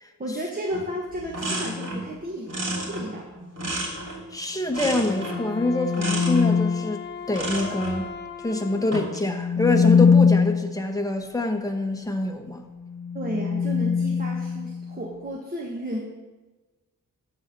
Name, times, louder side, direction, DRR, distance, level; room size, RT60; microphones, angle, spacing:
voice 1, 0.2-2.5 2.9-3.3 13.1-16.0, equal, 25° right, -1 dB, 1.4 m, -32 dB
sound 1, 0.7-0.9 1.1-2.1 2.5-4.3 4.7-5.5 5.9-6.5 7.3-8.0 8.8-9.3, right 1 dB, 50° right, 3.1 m, -31 dB
sound 2, 1.5-2.0 5.1-6.9 9.1-10.8 12.8-15.1, left 6 dB, 70° left, 0.7 m, -23 dB
voice 2, 4.3-8.1 8.4-12.6, left 2 dB, 10° left, 3 dB, 1.2 m, -26 dB
Wind instrument woodwind instrument, 5.0-9.1, left 6 dB, 35° left, 0.9 m, -37 dB
12.0 x 4.2 x 7.6 m, 1.2 s
wide cardioid pair, 100°, 33 cm